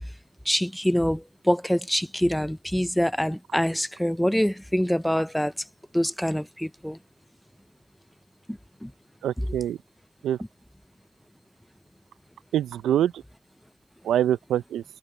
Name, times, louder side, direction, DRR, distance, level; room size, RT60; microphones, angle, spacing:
voice 1, 0.5-5.5 5.9-7.0 8.5-8.9 9.4-9.5, equal, 5° left, 0.5 m, -25 dB
voice 2, 9.2-9.8 10.2-10.4 12.5-13.1 14.0-14.8, right 11 dB, 75° right, 0.6 m, -24 dB
cardioid pair, 90°, 0 cm